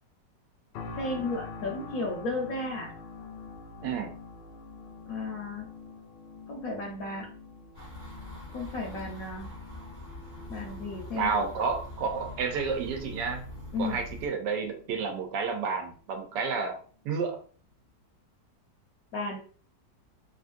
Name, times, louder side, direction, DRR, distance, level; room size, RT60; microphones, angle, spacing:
sound 1, 0.7-15.8 16.2-16.4, left 4 dB, 85° left, 1.3 m, -47 dB
voice 1, 0.9-2.9 5.1-5.7 6.5-7.3 8.5-9.5 10.5-11.4 13.7-14.0 19.1-19.4, left 2 dB, 65° left, 0 dB, 0.9 m, -34 dB
sound 2, 7.7-14.3, left 1 dB, 35° right, 1.3 m, -43 dB
voice 2, 11.2-13.4 13.8-16.8 17.0-17.4, right 5 dB, 75° right, 5 dB, 1.3 m, -30 dB
3.0 x 2.5 x 2.4 m, 0.43 s
omnidirectional pair, 1.9 m